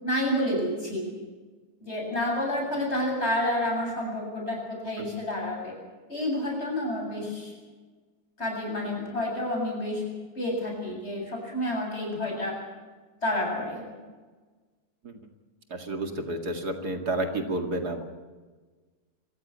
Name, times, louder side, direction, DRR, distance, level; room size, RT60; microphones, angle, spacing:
voice 1, 0.0-1.0 1.8-5.7 6.1-7.5 8.4-10.0 10.4-12.6 13.2-13.8, left 1 dB, 40° left, -1 dB, 8.1 m, -29 dB
voice 2, 15.7-18.0, right 2 dB, 70° right, 5 dB, 2.8 m, -30 dB
26.0 x 15.0 x 9.9 m, 1.3 s
omnidirectional pair, 1.7 m